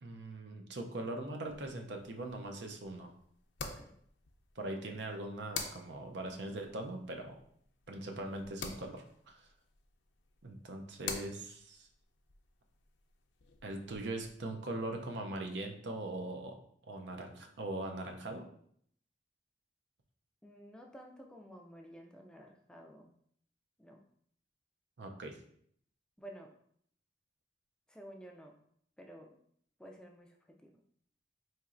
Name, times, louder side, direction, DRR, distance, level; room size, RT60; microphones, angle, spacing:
voice 1, 0.0-3.1 4.6-7.4 7.9-9.5 10.4-11.9 13.6-16.6 16.9-18.5 25.0-25.4, right 2 dB, 70° right, 3 dB, 0.5 m, -41 dB
sound 1, 1.5-14.3, left 5 dB, 80° left, 0.5 m, -49 dB
voice 2, 3.6-3.9 20.4-23.1 23.8-24.0 26.2-26.5 27.9-28.6 29.0-29.4 29.8-30.7, equal, 5° left, 2 dB, 0.3 m, -52 dB
4.3 x 3.0 x 2.5 m, 0.65 s
head